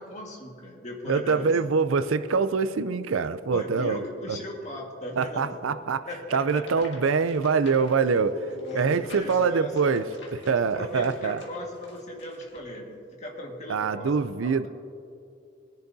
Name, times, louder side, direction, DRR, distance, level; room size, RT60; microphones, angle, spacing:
voice 1, 0.0-1.5 3.5-5.6 6.0-6.8 8.1-10.0 10.7-14.7, left 1 dB, 35° left, -1 dB, 1.7 m, -37 dB
voice 2, 1.1-4.0 5.2-8.3 8.7-10.1 10.5-11.4 13.7-14.7, right 5 dB, 80° right, 12 dB, 0.5 m, -24 dB
sound 1, 6.3-12.8, left 3 dB, 60° left, 1.8 m, -50 dB
20.5 x 10.5 x 2.7 m, 2.5 s
head